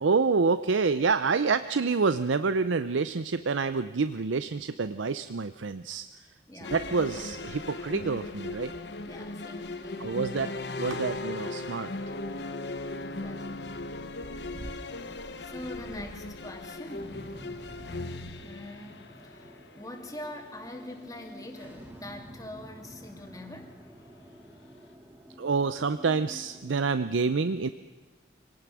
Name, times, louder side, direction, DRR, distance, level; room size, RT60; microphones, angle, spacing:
voice 1, 0.0-6.3 6.7-8.7 10.0-10.5 10.8-11.9 25.4-27.7, right 4 dB, 85° right, 12 dB, 0.6 m, -27 dB
voice 2, 6.5-6.8 9.0-10.2 13.0-13.7 15.0-17.4 18.4-19.5 19.8-23.8, left 1 dB, 20° left, 3 dB, 2.4 m, -44 dB
sound 1, 6.6-21.9, left 2 dB, 60° left, 1.1 m, -38 dB
sound 2, 6.7-18.3, right 1 dB, 45° right, 1.2 m, -51 dB
sound 3, 17.0-27.0, equal, 10° right, 1.7 m, -49 dB
25.5 x 18.5 x 6.2 m, 1.3 s
head